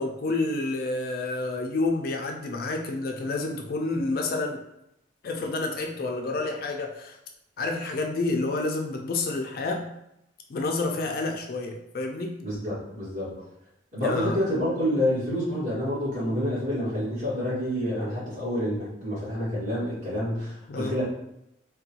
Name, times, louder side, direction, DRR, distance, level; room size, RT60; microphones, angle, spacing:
voice 1, 0.0-4.6 5.2-7.2 7.6-9.9 10.5-12.4 14.0-14.4 20.7-20.9, left 2 dB, 50° left, 3 dB, 0.3 m, -29 dB
voice 2, 12.4-13.3 13.9-21.0, equal, 40° right, -9 dB, 1.5 m, -28 dB
3.6 x 2.2 x 2.8 m, 0.81 s
head